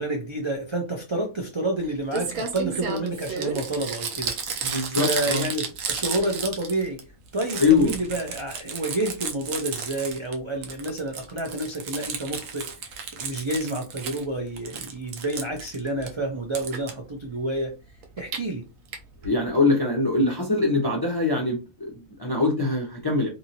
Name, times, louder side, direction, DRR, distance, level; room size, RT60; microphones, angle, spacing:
voice 1, 0.0-7.0 7.3-12.7 13.1-17.7 18.2-18.6, right 1 dB, 50° right, 0.3 m, -29 dB
Crumpling crinkling, 1.8-1.9 2.1-7.0 7.3-10.3 10.6-14.2 14.6-16.1 16.5-16.9 18.0-18.4 18.9-19.0 19.2-19.3 19.5-19.6, right 6 dB, 75° right, 1.0 m, -32 dB
voice 2, 4.6-5.4 7.6-7.9 19.2-23.3, left 3 dB, 30° left, 0.4 m, -23 dB
2.7 x 2.7 x 2.8 m
omnidirectional pair, 1.4 m